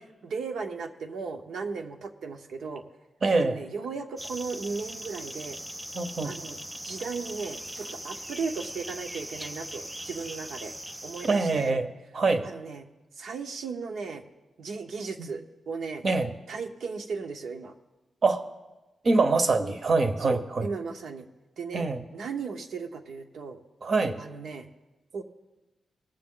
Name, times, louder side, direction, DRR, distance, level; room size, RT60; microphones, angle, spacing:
voice 1, 0.2-2.8 3.4-5.6 6.2-6.6 6.8-10.7 11.0-11.8 12.4-12.9 13.2-14.2 14.6-16.0 16.5-17.7 20.2-21.2 21.6-21.9 22.1-23.6 24.2-24.7 25.1-25.2, right 5 dB, 80° right, 5 dB, 0.9 m, -36 dB
voice 2, 3.2-3.6 5.9-6.3 11.2-11.9 12.1-12.4 15.2-15.3 16.0-16.3 18.2-18.4 19.0-20.7 21.7-22.0 23.8-24.2, right 3 dB, 40° right, 9 dB, 0.8 m, -24 dB
sound 1, 4.2-11.7, equal, 5° right, 0.3 m, -40 dB
19.5 x 7.0 x 3.8 m, 1.1 s
wide cardioid pair, 150°, 0 cm